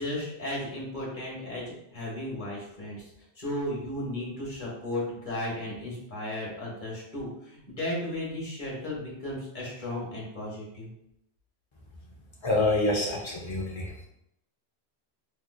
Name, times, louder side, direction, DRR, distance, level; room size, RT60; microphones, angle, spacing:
voice 1, 0.0-3.1 3.4-10.9, left 1 dB, 45° left, -4 dB, 1.3 m, -35 dB
voice 2, 12.4-13.9, left 2 dB, 30° left, -2 dB, 0.7 m, -26 dB
3.7 x 3.0 x 2.2 m, 0.78 s
omnidirectional pair, 1.1 m